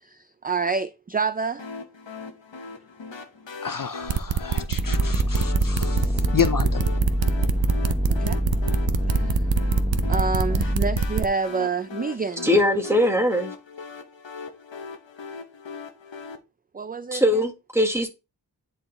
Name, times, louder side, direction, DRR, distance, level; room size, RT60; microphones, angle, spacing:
voice 1, 0.0-1.7 8.1-8.4 9.1-9.4 10.1-12.5 16.7-17.3, right 4 dB, 20° right, 0.4 m, -28 dB
sound 1, 1.6-16.4, left 4 dB, 80° left, 1.0 m, -40 dB
voice 2, 3.6-6.9, left 7 dB, 50° left, 0.6 m, -29 dB
sound 2, 4.1-11.3, right 7 dB, 85° right, 0.7 m, -25 dB
sound 3, 4.7-11.2, equal, 15° left, 1.2 m, -25 dB
voice 3, 12.4-13.5 17.1-18.1, left 1 dB, 5° right, 1.7 m, -21 dB
9.8 x 4.3 x 3.3 m
wide cardioid pair, 50°, 44 cm